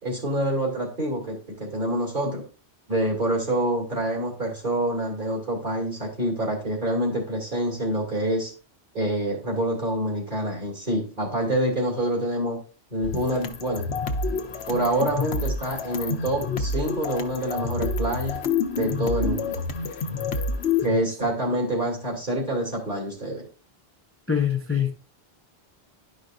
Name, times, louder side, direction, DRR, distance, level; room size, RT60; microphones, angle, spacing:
voice 1, 0.0-2.4 2.9-8.5 8.9-12.6 12.9-13.9 14.7-18.4 18.7-19.6 20.8-23.4, right 1 dB, 55° right, 2.6 m, -26 dB
sound 1, 13.0-20.9, left 4 dB, 90° left, 1.0 m, -28 dB
voice 2, 24.3-24.9, left 8 dB, 20° left, 0.5 m, -24 dB
11.0 x 5.1 x 2.5 m
omnidirectional pair, 1.0 m